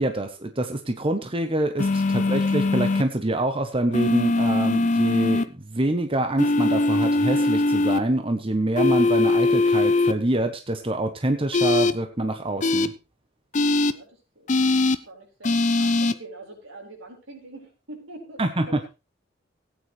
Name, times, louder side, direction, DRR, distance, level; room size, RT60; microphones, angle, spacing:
voice 1, 0.0-12.9 18.4-18.6, right 1 dB, 25° right, 6 dB, 1.0 m, -26 dB
sound 1, 1.8-3.0 3.9-5.4 6.4-8.0 8.8-10.1 11.5-11.9 12.6-12.9 13.5-13.9 14.5-15.0 15.4-16.1, left 2 dB, 40° left, 0.6 m, -21 dB
voice 2, 13.8-14.6 15.0-18.9, right 2 dB, 80° right, 1 dB, 5.1 m, -44 dB
17.0 x 9.4 x 3.3 m, 0.29 s
head